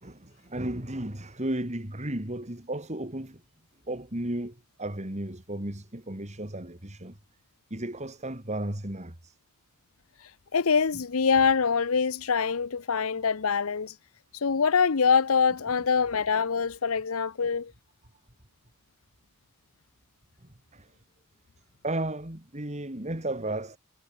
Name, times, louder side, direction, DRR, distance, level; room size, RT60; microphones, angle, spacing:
voice 1, 0.0-3.4 3.9-7.2 7.7-9.3 20.7-20.9 21.8-23.8, right 1 dB, 30° right, 2.9 m, -34 dB
voice 2, 10.2-14.0 14.3-17.7, left 5 dB, 75° left, 0.8 m, -25 dB
head